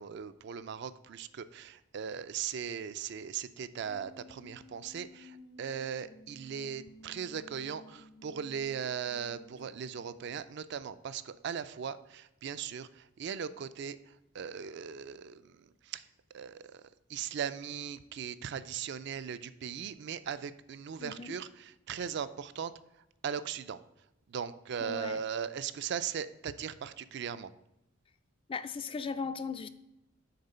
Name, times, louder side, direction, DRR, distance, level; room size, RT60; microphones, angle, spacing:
voice 1, 0.0-14.0 14.3-16.0 16.3-16.8 17.1-22.7 23.2-23.8 24.3-27.5, right 7 dB, 60° right, 13 dB, 0.4 m, -38 dB
sound 1, 3.9-10.5, left 1 dB, 65° left, 0.7 m, -55 dB
voice 2, 21.0-21.4 24.8-25.2 28.5-29.7, left 5 dB, 25° left, 12 dB, 0.3 m, -37 dB
6.7 x 4.1 x 5.4 m, 0.87 s
head